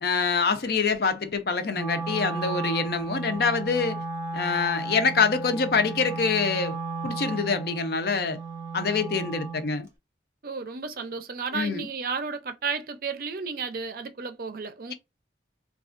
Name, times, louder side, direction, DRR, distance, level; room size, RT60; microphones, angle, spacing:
voice 1, 0.0-4.0 4.3-6.8 7.0-8.4 8.7-9.9 11.5-11.9, left 5 dB, 60° left, 0.5 m, -25 dB
Wind instrument woodwind instrument, 1.7-9.7, right 4 dB, 15° right, 0.7 m, -34 dB
voice 2, 10.4-14.9, right 4 dB, 50° right, 0.5 m, -33 dB
4.2 x 2.3 x 2.4 m
head